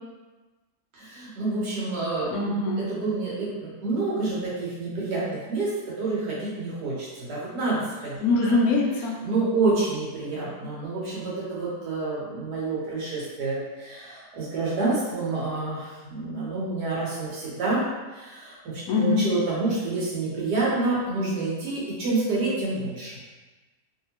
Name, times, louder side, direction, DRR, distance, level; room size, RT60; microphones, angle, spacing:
voice 1, 0.9-2.3 2.9-8.2 8.4-8.5 9.2-17.8 18.1-23.2, right 3 dB, 85° right, -6 dB, 1.6 m, -28 dB
voice 2, 2.3-2.8 8.2-9.2 18.9-19.3, left 3 dB, 70° left, -1 dB, 1.0 m, -23 dB
3.2 x 2.7 x 2.8 m, 1.2 s
omnidirectional pair, 1.7 m